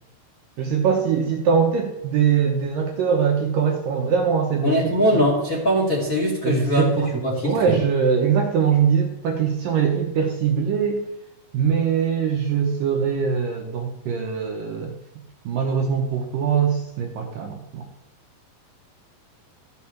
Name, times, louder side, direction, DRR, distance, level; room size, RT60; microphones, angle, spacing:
voice 1, 0.6-5.2 6.4-7.1 7.4-11.0 11.5-14.9 15.5-17.8, right 7 dB, 70° right, 2 dB, 2.3 m, -22 dB
voice 2, 4.6-6.9 7.2-7.8, equal, 25° left, -3 dB, 2.3 m, -21 dB
14.0 x 6.3 x 7.1 m, 0.97 s
omnidirectional pair, 4.9 m